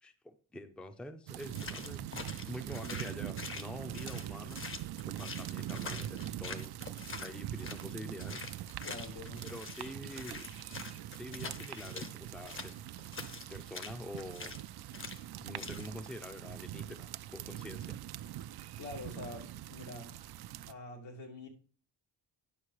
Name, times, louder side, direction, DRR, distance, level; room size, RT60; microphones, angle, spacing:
voice 1, 0.0-2.1 2.5-4.6 5.1-6.8 7.2-8.4 9.4-10.5 11.1-12.8 13.5-14.5 15.4-18.0, left 1 dB, ahead, 0.6 m, -46 dB
sound 1, 1.3-20.7, right 13 dB, 60° right, 0.5 m, -43 dB
sound 2, 1.4-7.9 8.2-12.1 12.5-14.7 14.9-15.2 15.6-15.9, left 4 dB, 30° left, 0.9 m, -45 dB
voice 2, 8.8-9.4 18.8-20.1 20.7-21.5, left 2 dB, 90° left, 3.0 m, -45 dB
10.0 x 6.2 x 4.8 m
wide cardioid pair, 155°, 43 cm